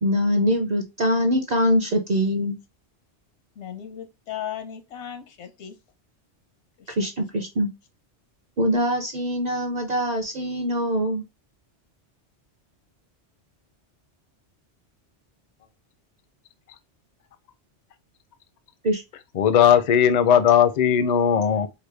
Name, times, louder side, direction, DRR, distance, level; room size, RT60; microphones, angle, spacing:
voice 1, 0.0-2.6 7.0-7.7 8.6-11.2 18.8-19.0, equal, 45° right, 0.6 m, -23 dB
voice 2, 3.6-5.8 6.8-7.0, left 9 dB, 85° left, 1.0 m, -36 dB
voice 3, 19.4-21.7, left 9 dB, 50° left, 0.5 m, -18 dB
4.7 x 2.0 x 3.2 m
omnidirectional pair, 1.1 m